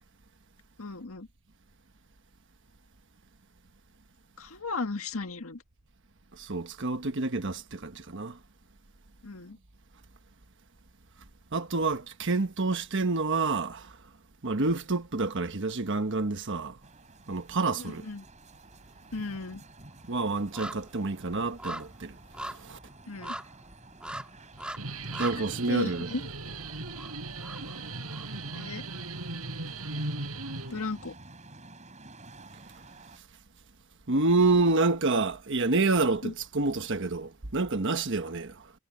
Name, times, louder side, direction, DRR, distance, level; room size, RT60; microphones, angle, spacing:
voice 1, 0.8-1.3 4.4-5.6 9.2-9.6 17.8-18.3 19.1-19.6 23.1-23.3 25.4-26.2 28.5-28.8 30.7-31.1 36.2-36.3, left 3 dB, 75° left, 1.8 m, -35 dB
voice 2, 6.3-8.4 11.5-14.0 14.4-16.8 17.3-18.0 20.1-22.2 22.4-22.8 25.2-26.1 34.1-38.7, right 3 dB, 55° right, 1.3 m, -28 dB
sound 1, 16.8-33.2, right 2 dB, 30° right, 6.9 m, -51 dB
sound 2, 18.0-18.4 18.6-28.6 29.0-29.1, right 1 dB, 5° right, 2.6 m, -43 dB
Guitar, 24.5-31.1, right 2 dB, 75° right, 7.7 m, -38 dB
head